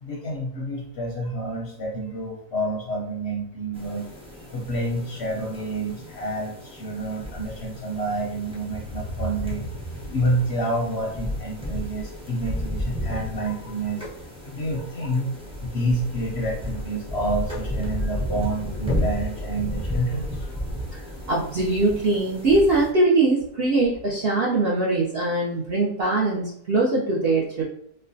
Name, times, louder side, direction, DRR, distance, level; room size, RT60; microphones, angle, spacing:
voice 1, 0.0-4.1 4.5-9.7 10.1-14.1 14.5-15.3 15.7-20.6, right 1 dB, 60° left, -2 dB, 0.7 m, -28 dB
sound 1, 3.7-22.9, equal, 5° right, 0.5 m, -33 dB
voice 2, 21.3-27.6, right 2 dB, 65° right, -4 dB, 0.6 m, -22 dB
4.2 x 2.1 x 2.6 m, 0.69 s
omnidirectional pair, 1.6 m